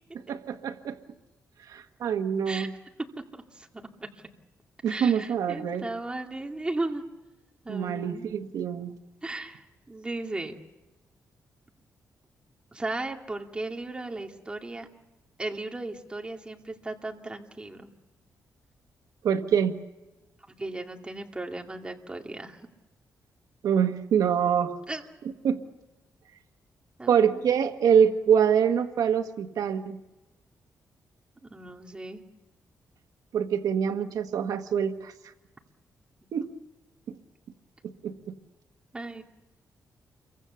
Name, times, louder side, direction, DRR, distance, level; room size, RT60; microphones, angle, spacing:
voice 1, 0.3-1.0 1.7-2.7 4.8-5.8 7.7-8.9 19.2-19.7 23.6-24.8 25.4-25.6 27.1-30.0 33.3-35.1 36.3-36.5 38.0-38.3, right 8 dB, 80° right, 7 dB, 1.4 m, -25 dB
voice 2, 3.5-4.1 4.9-7.0 7.6-8.3 9.2-10.5 12.7-14.9 15.4-17.9 20.5-22.7 24.9-25.0 27.0-27.7 31.5-32.2 38.9-39.2, right 2 dB, 15° right, 3 dB, 2.3 m, -36 dB
29.0 x 23.5 x 6.9 m, 1.1 s
cardioid pair, 125°, 6 cm